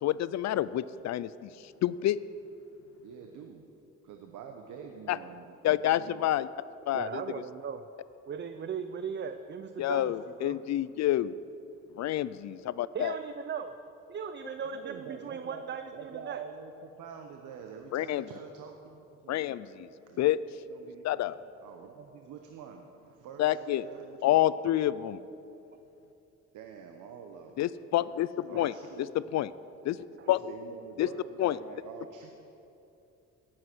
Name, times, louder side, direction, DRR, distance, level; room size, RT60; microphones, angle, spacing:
voice 1, 0.0-2.2 5.1-5.2 5.6-6.5 6.9-7.2 9.8-11.3 12.0-13.2 17.9-18.2 19.3-19.9 20.2-20.4 21.0-21.4 23.4-23.9 24.2-25.2 27.6-28.7 29.0-29.5 29.8-30.0 30.3-30.4 31.0-31.1 31.4-31.6, left 13 dB, 65° left, 17 dB, 0.4 m, -28 dB
voice 2, 3.0-3.7 4.0-6.3 14.6-15.6 15.9-19.5 20.1-20.3 20.7-21.3 21.6-24.4 26.5-27.6 28.5-29.4 30.3-32.3, right 6 dB, 85° right, 4 dB, 1.0 m, -46 dB
voice 3, 6.9-7.8 8.3-10.6 12.9-13.7 14.1-16.4 28.5-28.7 30.2-30.3, right 7 dB, 35° right, 10 dB, 0.6 m, -38 dB
17.5 x 7.7 x 6.1 m, 2.8 s
cardioid pair, 90°, 30 cm